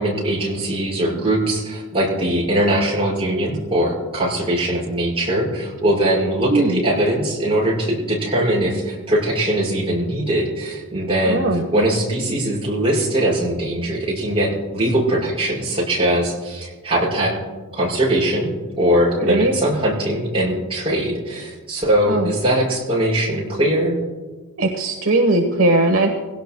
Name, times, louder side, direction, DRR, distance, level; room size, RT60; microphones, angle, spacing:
voice 1, 0.0-11.5 11.7-17.3 17.7-18.5 18.8-24.0, right 1 dB, 25° right, -5 dB, 5.6 m, -21 dB
voice 2, 6.5-6.8 11.2-11.6 19.3-19.5 22.1-22.3 24.6-26.1, right 2 dB, 65° right, 3 dB, 1.2 m, -18 dB
22.5 x 17.0 x 2.3 m, 1.3 s
head